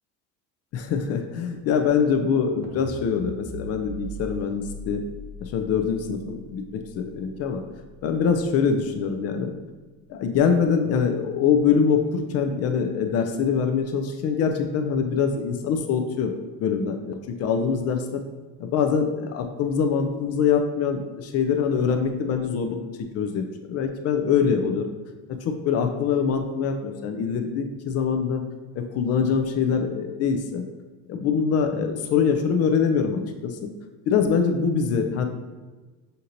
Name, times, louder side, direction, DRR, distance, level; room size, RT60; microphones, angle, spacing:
voice 1, 0.7-5.0 5.4-7.6 8.0-9.5 10.1-16.3 16.6-18.2 18.6-22.8 23.1-24.9 25.4-28.4 28.7-30.6 31.1-33.6 34.1-35.3, left 6 dB, 45° left, 5 dB, 0.4 m, -24 dB
sound 1, 2.6-8.9, right 1 dB, 70° right, 0.7 m, -41 dB
6.4 x 2.8 x 2.6 m, 1.3 s
cardioid pair, 135°, 35 cm